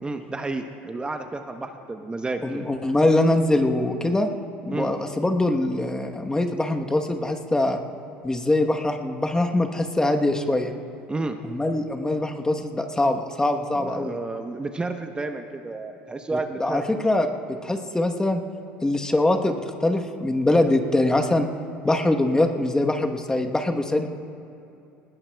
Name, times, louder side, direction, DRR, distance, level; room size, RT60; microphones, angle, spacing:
voice 1, 0.0-2.7 4.7-4.9 11.1-11.4 13.7-17.0, right 3 dB, 15° right, 6 dB, 0.9 m, -31 dB
voice 2, 2.4-4.3 4.6-7.8 8.2-10.7 11.5-14.2 16.6-18.4 18.8-21.5 21.8-24.1, left 2 dB, 10° left, 4 dB, 1.1 m, -23 dB
20.5 x 20.0 x 2.3 m, 2.7 s
hypercardioid pair, 75°, 5 cm